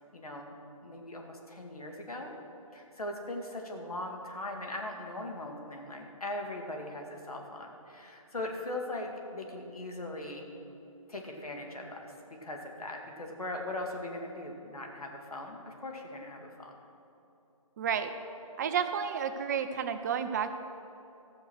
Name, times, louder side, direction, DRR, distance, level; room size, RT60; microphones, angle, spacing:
voice 1, 0.1-0.5 0.8-2.4 2.7-10.5 11.1-16.7, left 1 dB, 90° left, 1 dB, 2.2 m, -40 dB
voice 2, 17.8-18.1 18.6-20.5, right 7 dB, 30° right, 8 dB, 0.5 m, -31 dB
14.5 x 6.7 x 6.3 m, 2.9 s
hypercardioid pair, 150°, 18 cm